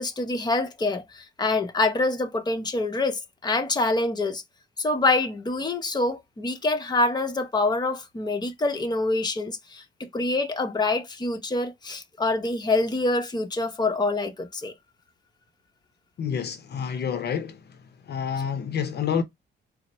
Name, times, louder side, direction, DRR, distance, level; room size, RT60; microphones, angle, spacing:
voice 1, 0.0-4.4 4.8-14.7, left 2 dB, 20° left, 0.9 m, -26 dB
voice 2, 16.2-17.6 18.1-19.2, left 7 dB, 55° left, 0.7 m, -28 dB
4.2 x 2.0 x 4.0 m
cardioid pair, 90°, 20 cm